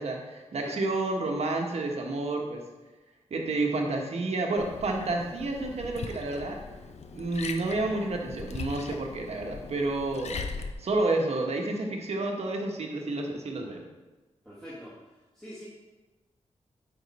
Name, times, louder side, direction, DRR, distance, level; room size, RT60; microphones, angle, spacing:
voice 1, 0.0-2.6 3.3-6.6 7.1-10.4 10.8-13.8, right 2 dB, 65° right, 1 dB, 1.3 m, -30 dB
Liquid, 4.6-10.7, left 4 dB, 65° left, 0.7 m, -40 dB
voice 2, 14.4-14.9 15.4-15.7, equal, 5° left, -10 dB, 1.8 m, -43 dB
9.4 x 5.3 x 4.3 m, 1.2 s
wide cardioid pair, 130°, 12 cm